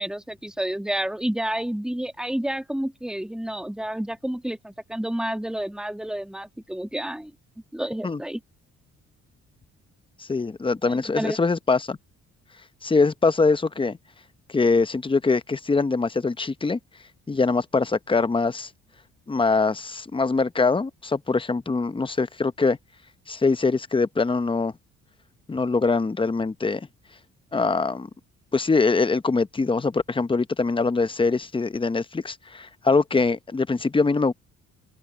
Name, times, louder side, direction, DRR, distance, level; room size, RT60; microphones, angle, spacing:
voice 1, 0.0-7.3 7.7-8.4 10.9-11.4, right 1 dB, ahead, 2.1 m, -30 dB
voice 2, 10.2-12.0 12.8-14.0 14.5-16.8 17.3-18.7 19.3-22.8 23.3-24.7 25.5-26.9 27.5-28.1 28.5-34.3, left 4 dB, 15° left, 0.8 m, -23 dB
open air
cardioid pair, 90°, 30 cm